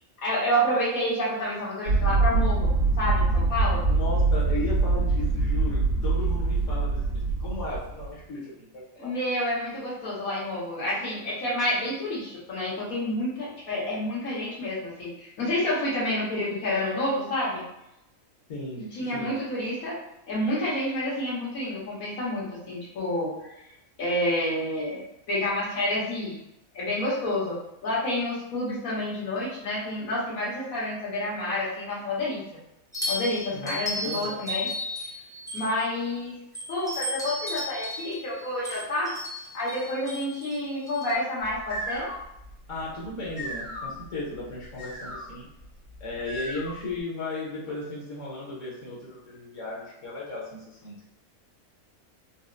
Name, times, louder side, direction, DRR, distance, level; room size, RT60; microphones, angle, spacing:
voice 1, 0.2-2.7 3.0-3.8 9.0-17.6 18.9-20.0 20.3-23.6 24.0-25.0 25.3-26.4 26.7-27.6 27.8-32.4 33.1-34.7 35.0-35.1 35.5-36.3 36.7-39.1 39.5-42.1, left 1 dB, 85° left, -6 dB, 1.6 m, -29 dB
sound 1, 1.9-8.1, right 3 dB, 80° right, 1.4 m, -24 dB
voice 2, 3.9-9.1 18.5-19.4 33.5-34.4 42.7-45.5 46.0-50.9, left 2 dB, 65° left, -5 dB, 1.2 m, -36 dB
sound 2, 32.9-36.0 36.5-41.1, left 1 dB, 5° left, 0.3 m, -34 dB
sound 3, 41.4-47.0, equal, 40° right, 0.8 m, -39 dB
4.1 x 2.0 x 2.5 m, 0.85 s
omnidirectional pair, 1.4 m